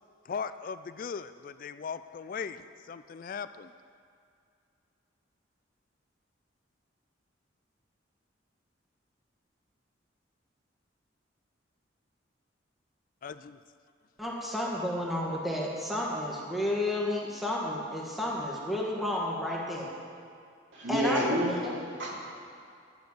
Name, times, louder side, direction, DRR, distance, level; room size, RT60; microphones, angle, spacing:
voice 1, 0.3-3.7 13.2-13.6, left 6 dB, 45° left, 12 dB, 0.3 m, -38 dB
voice 2, 14.2-19.9 20.9-21.8, left 1 dB, ahead, -4 dB, 1.7 m, -31 dB
voice 3, 20.7-21.5 21.8-22.6, right 1 dB, 70° right, -4 dB, 2.8 m, -30 dB
13.0 x 7.0 x 7.9 m, 2.4 s
head